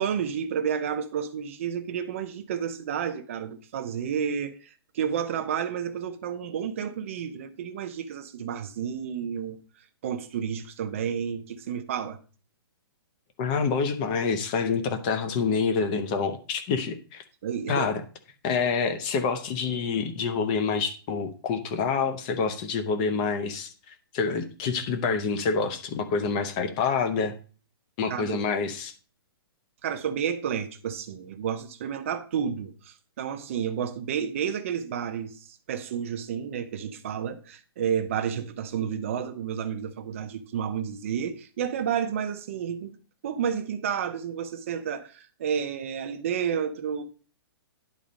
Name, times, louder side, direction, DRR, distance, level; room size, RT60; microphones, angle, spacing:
voice 1, 0.0-9.6 10.0-12.2 17.4-17.9 28.1-28.4 29.8-43.0 43.2-47.0, right 8 dB, 30° right, 0.7 m, -31 dB
voice 2, 13.4-17.2 17.7-18.0 18.4-23.7 24.1-27.3 28.0-28.9, left 5 dB, 20° left, 0.7 m, -27 dB
10.5 x 4.2 x 5.1 m
hypercardioid pair, 180°, 13 cm